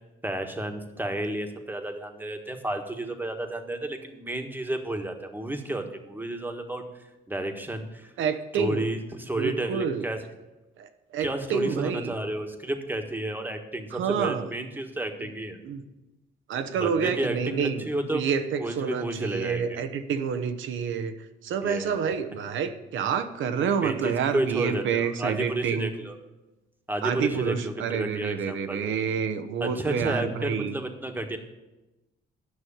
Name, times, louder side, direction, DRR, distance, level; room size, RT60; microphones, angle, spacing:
voice 1, 0.2-6.8 7.3-8.1 8.5-10.2 11.2-15.6 16.7-18.2 18.6-19.8 21.6-22.0 23.8-26.2 26.9-28.9 29.6-31.4, right 1 dB, 10° right, 5 dB, 1.5 m, -31 dB
voice 2, 8.2-8.9 9.4-10.1 10.8-12.1 13.9-14.5 15.2-15.3 15.6-15.8 16.5-17.9 18.1-21.1 21.4-25.9 27.0-30.7, right 6 dB, 75° right, 10 dB, 1.0 m, -28 dB
9.6 x 6.3 x 8.7 m, 1.0 s
cardioid pair, 90°, 20 cm